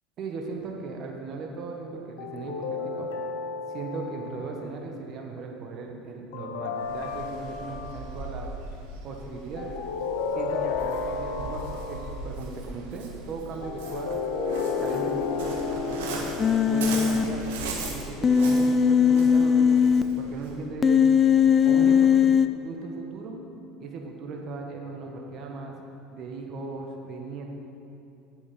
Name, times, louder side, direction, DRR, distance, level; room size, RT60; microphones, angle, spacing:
voice 1, 0.2-3.1 3.7-8.5 9.0-9.7 10.3-14.2 14.8-16.1 16.7-17.6 17.9-21.0 21.6-22.2 22.6-23.4 23.8-25.7 26.1-27.6, right 3 dB, 45° right, 1 dB, 1.6 m, -37 dB
sound 1, 2.2-4.6 6.3-8.2 9.6-12.3 13.6-18.1, left 5 dB, 65° left, 0.9 m, -32 dB
Waves surf, 6.8-20.7, right 3 dB, 70° right, 1.6 m, -39 dB
Human voice, 16.4-17.2 18.2-20.0 20.8-22.5, left 7 dB, 30° left, 0.5 m, -19 dB
8.4 x 8.1 x 7.1 m, 2.7 s
hypercardioid pair, 70°, 0 cm